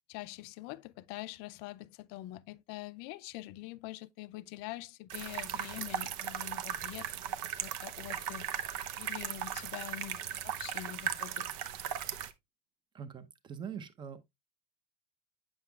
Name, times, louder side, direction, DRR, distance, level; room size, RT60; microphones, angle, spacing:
voice 1, 0.1-11.5, left 17 dB, 60° left, 0.4 m, -45 dB
sound 1, 5.1-12.3, right 10 dB, 65° right, 0.7 m, -37 dB
voice 2, 12.9-14.2, right 7 dB, 25° right, 0.7 m, -43 dB
7.6 x 5.9 x 2.3 m
supercardioid pair, 130°, 20 cm